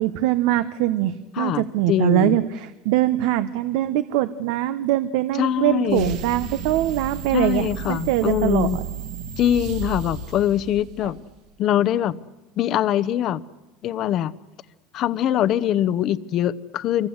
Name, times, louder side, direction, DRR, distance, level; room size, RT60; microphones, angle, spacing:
voice 1, 0.0-8.7, right 13 dB, 75° right, 1.0 m, -22 dB
voice 2, 1.4-2.4 5.4-6.1 7.3-8.8 9.4-11.2 11.6-12.1 12.6-13.4 13.8-14.3 14.9-17.1, left 11 dB, 45° left, 0.8 m, -23 dB
sound 1, 5.9-11.3, right 7 dB, 60° right, 2.6 m, -33 dB
26.5 x 24.5 x 8.1 m
cardioid pair, 150°, 0 cm